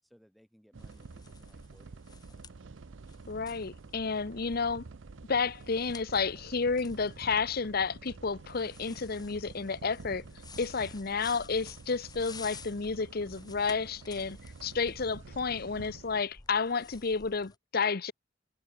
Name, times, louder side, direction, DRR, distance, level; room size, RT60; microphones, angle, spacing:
voice 1, 0.0-2.7, equal, ahead, 5.4 m, -64 dB
sound 1, 0.7-16.2, right 4 dB, 80° right, 0.6 m, -49 dB
sound 2, 0.8-17.6, left 5 dB, 20° left, 1.1 m, -53 dB
voice 2, 3.3-4.8 5.3-10.2 10.6-18.1, left 5 dB, 50° left, 0.8 m, -31 dB
head